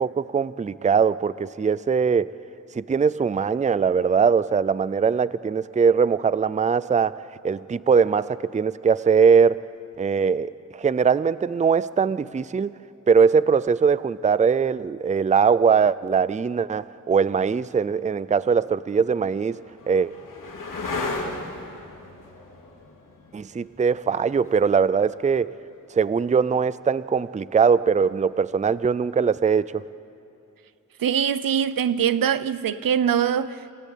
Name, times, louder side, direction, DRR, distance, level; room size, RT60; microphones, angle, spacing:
voice 1, 0.0-2.3 2.7-9.6 10.0-12.7 13.1-19.6 19.9-20.1 23.3-25.5 25.9-29.7, right 6 dB, 20° right, 0.4 m, -21 dB
sound 1, 18.8-26.2 28.5-29.1, left 3 dB, 70° left, 3.2 m, -36 dB
voice 2, 31.0-33.7, right 8 dB, 85° right, 0.7 m, -23 dB
27.5 x 15.5 x 8.7 m
wide cardioid pair, 95°, 33 cm